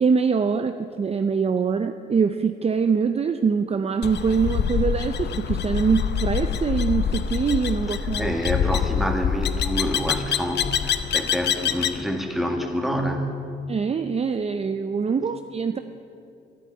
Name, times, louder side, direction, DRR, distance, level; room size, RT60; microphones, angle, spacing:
voice 1, 0.0-8.4 13.7-15.8, right 5 dB, 30° right, 9 dB, 0.6 m, -23 dB
sound 1, 4.0-12.0, left 8 dB, 60° left, 0.8 m, -25 dB
voice 2, 8.2-13.3, equal, ahead, 3 dB, 2.0 m, -27 dB
12.5 x 10.5 x 9.7 m, 2.6 s
cardioid pair, 90°, 20 cm